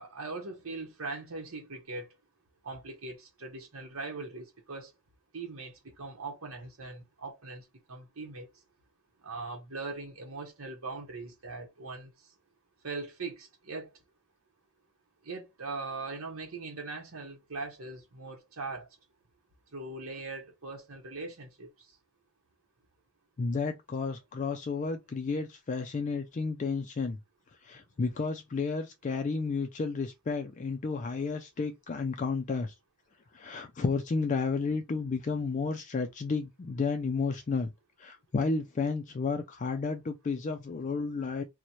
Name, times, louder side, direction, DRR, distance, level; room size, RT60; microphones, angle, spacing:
voice 1, 0.0-2.1 2.6-4.9 5.3-8.5 9.2-12.1 12.8-13.9 15.2-18.9 19.7-21.7, right 3 dB, 70° right, 0.9 m, -40 dB
voice 2, 23.4-27.2 27.6-32.7 33.3-37.7 38.0-41.4, left 4 dB, 35° left, 0.3 m, -32 dB
3.0 x 2.2 x 4.0 m
head